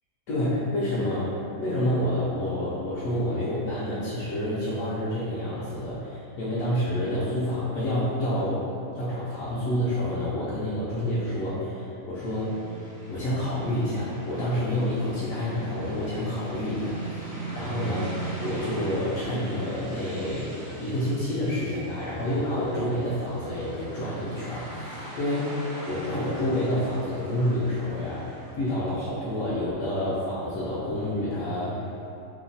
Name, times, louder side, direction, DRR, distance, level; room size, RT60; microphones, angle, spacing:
voice 1, 0.3-8.7 8.9-12.6 13.1-17.1 17.5-31.9, left 1 dB, 70° left, -10 dB, 0.9 m, -28 dB
sound 1, 12.3-28.7, right 2 dB, 65° right, 1.0 m, -40 dB
3.0 x 2.0 x 2.6 m, 2.8 s
omnidirectional pair, 1.6 m